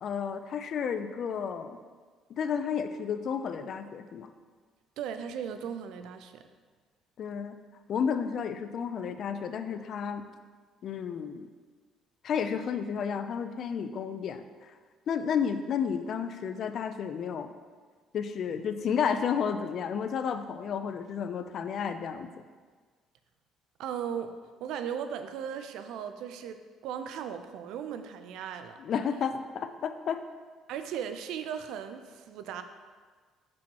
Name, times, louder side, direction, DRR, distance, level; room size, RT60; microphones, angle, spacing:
voice 1, 0.0-1.8 2.3-4.3 7.2-7.6 7.9-10.2 10.8-11.5 12.2-14.7 15.1-17.5 18.1-22.3 28.8-30.2, left 7 dB, 55° left, 9 dB, 0.4 m, -32 dB
voice 2, 5.0-6.5 23.8-24.4 24.6-28.8 30.7-32.6, right 8 dB, 80° right, 9 dB, 0.4 m, -37 dB
6.1 x 6.1 x 2.9 m, 1.5 s
cardioid pair, 95°, 0 cm